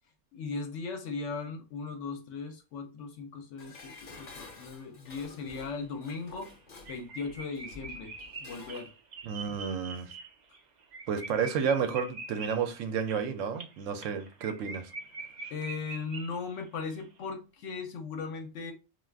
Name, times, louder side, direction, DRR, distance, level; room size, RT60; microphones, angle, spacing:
voice 1, 0.3-6.5 6.9-8.1 8.4-8.9 15.5-18.7, left 4 dB, 70° left, 0.9 m, -38 dB
Dishes pots and pans, 3.6-8.9 9.2-9.3, left 3 dB, 40° left, 0.7 m, -51 dB
sound 1, 5.7-5.8 6.1-6.2 6.5-6.6 6.8-16.7 16.9-17.1, right 4 dB, 55° right, 0.5 m, -45 dB
voice 2, 9.2-10.1 11.1-14.9, right 6 dB, 80° right, 0.9 m, -31 dB
2.4 x 2.3 x 3.3 m
omnidirectional pair, 1.3 m